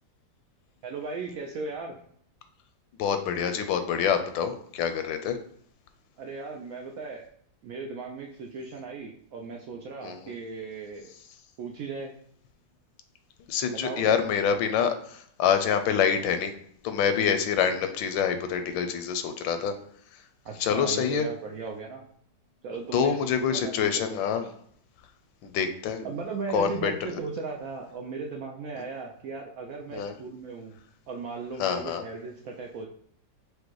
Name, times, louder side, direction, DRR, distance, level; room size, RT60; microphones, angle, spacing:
voice 1, 0.8-1.9 6.2-7.3 7.6-11.1 11.6-12.2 13.7-14.2 17.1-17.4 20.4-22.0 22.6-24.5 26.0-30.8 31.1-32.9, right 4 dB, 90° right, 1 dB, 0.7 m, -37 dB
voice 2, 3.0-5.4 10.0-10.3 13.5-16.5 16.8-19.8 20.1-20.2 20.6-21.3 22.9-24.4 25.4-26.0 26.5-27.2 29.9-30.1 31.6-32.0, left 7 dB, 80° left, 8 dB, 1.3 m, -26 dB
5.0 x 2.2 x 4.5 m, 0.63 s
omnidirectional pair, 2.1 m